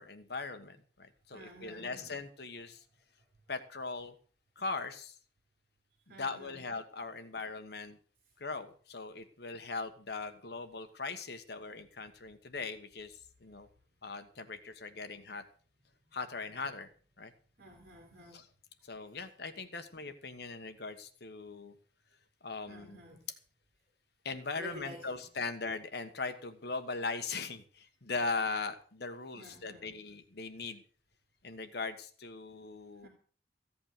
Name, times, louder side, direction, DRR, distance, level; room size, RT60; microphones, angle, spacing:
voice 1, 0.0-2.8 3.5-4.1 4.6-5.2 6.1-8.0 8.4-13.7 14.0-15.4 16.1-16.9 17.2-17.3 18.3-18.4 18.8-21.7 22.4-23.0 24.2-30.8 31.4-33.1, left 4 dB, 60° left, 9 dB, 1.3 m, -40 dB
voice 2, 1.3-2.2 6.1-6.7 17.6-18.4 22.7-23.2 24.6-25.3 29.3-30.0 33.0-33.1, equal, 55° right, 1 dB, 2.9 m, -51 dB
15.0 x 8.6 x 6.7 m, 0.42 s
head